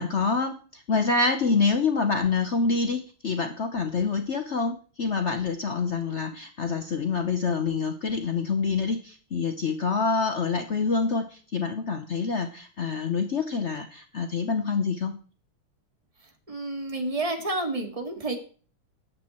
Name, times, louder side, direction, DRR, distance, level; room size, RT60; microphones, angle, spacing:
voice 1, 0.0-15.2, left 4 dB, 80° left, 6 dB, 0.6 m, -26 dB
voice 2, 16.5-18.4, right 2 dB, 15° right, 3 dB, 2.0 m, -30 dB
13.5 x 9.4 x 4.3 m, 0.41 s
omnidirectional pair, 2.4 m